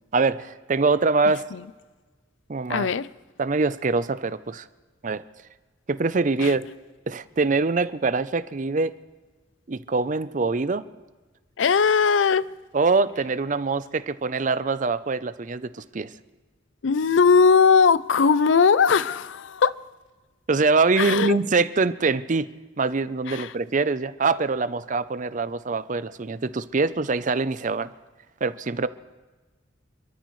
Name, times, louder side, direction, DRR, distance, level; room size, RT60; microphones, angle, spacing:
voice 1, 0.1-1.4 2.5-2.9 3.4-4.7 5.0-5.2 5.9-6.6 7.1-9.0 9.7-10.9 12.7-16.1 20.5-22.5 22.8-27.9 28.4-28.9, right 4 dB, 45° right, 0.6 m, -24 dB
voice 2, 2.7-3.1 6.4-6.5 11.6-12.5 16.8-19.7 21.0-21.4 23.3-23.5, left 5 dB, 90° left, 0.5 m, -19 dB
28.0 x 13.5 x 3.2 m
head